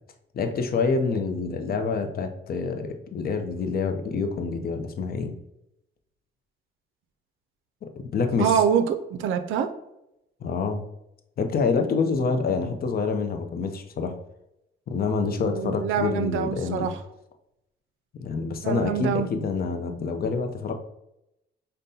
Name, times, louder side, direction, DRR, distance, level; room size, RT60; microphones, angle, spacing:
voice 1, 0.3-5.3 7.8-8.6 10.4-10.8 11.4-14.2 14.9-16.9 18.2-20.7, left 4 dB, 50° left, 6 dB, 0.5 m, -27 dB
voice 2, 8.4-9.7 15.6-16.9 18.6-19.3, right 8 dB, 80° right, 9 dB, 0.4 m, -25 dB
5.1 x 2.2 x 2.7 m, 0.85 s
cardioid pair, 90°, 20 cm